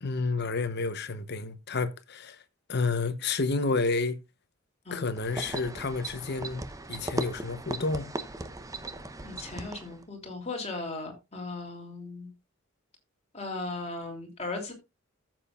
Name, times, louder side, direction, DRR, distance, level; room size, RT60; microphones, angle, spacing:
voice 1, 0.0-2.4 2.7-4.2 4.9-8.1, left 3 dB, 50° left, 1.0 m, -30 dB
sound 1, 5.2-10.0, right 2 dB, 15° right, 0.8 m, -37 dB
voice 2, 9.2-12.3 13.3-14.7, left 3 dB, 30° left, 3.1 m, -37 dB
14.5 x 7.6 x 2.5 m
head